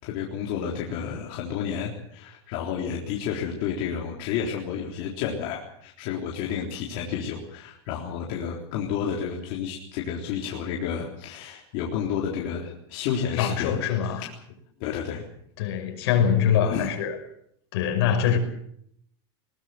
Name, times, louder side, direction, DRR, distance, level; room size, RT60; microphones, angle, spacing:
voice 1, 0.0-13.8 14.2-14.3 14.8-15.2 16.7-16.9, left 8 dB, 50° left, -2 dB, 3.8 m, -31 dB
voice 2, 13.4-14.2 15.6-17.2 17.7-18.4, left 8 dB, 70° left, 6 dB, 5.7 m, -23 dB
21.5 x 19.0 x 7.8 m, 0.70 s
supercardioid pair, 155°, 14 cm